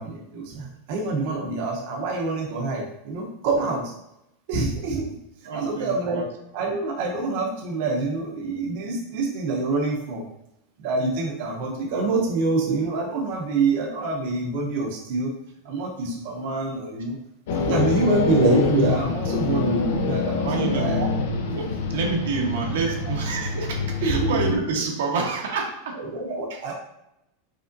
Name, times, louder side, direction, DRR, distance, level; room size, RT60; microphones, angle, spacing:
voice 1, 0.0-3.9 4.5-5.1 5.5-6.2 6.5-10.3 10.8-15.3 15.6-17.2 17.5-21.1 24.0-24.4 26.1-26.7, right 3 dB, 55° right, -2 dB, 0.8 m, -26 dB
voice 2, 5.5-6.3 20.4-26.0 26.5-26.6, right 4 dB, 90° right, 0 dB, 1.0 m, -28 dB
sound 1, 17.5-24.5, left 4 dB, 65° left, 0.6 m, -26 dB
5.1 x 3.6 x 2.6 m, 0.85 s
supercardioid pair, 165°, 0 cm